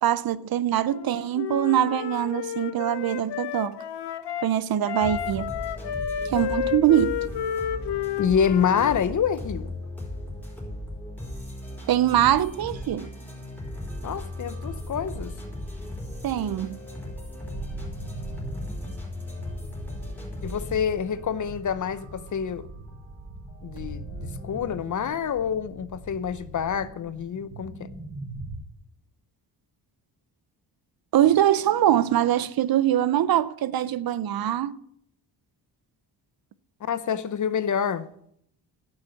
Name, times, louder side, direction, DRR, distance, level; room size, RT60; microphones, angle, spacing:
voice 1, 0.0-3.8 4.4-5.5 6.2-7.1 11.9-13.1 16.2-16.8 31.1-34.8, right 11 dB, 55° right, 0.6 m, -23 dB
Wind instrument woodwind instrument, 0.9-4.5 4.8-9.0, left 9 dB, 75° left, 0.9 m, -31 dB
sound 1, 5.0-24.7, left 1 dB, 5° left, 4.3 m, -38 dB
voice 2, 8.2-9.7 14.0-15.3 20.4-22.7 23.6-27.9 36.8-38.1, left 7 dB, 45° left, 0.7 m, -27 dB
sound 2, 17.4-28.6, right 1 dB, 15° right, 4.2 m, -41 dB
11.0 x 6.5 x 7.7 m
cardioid pair, 110°, 42 cm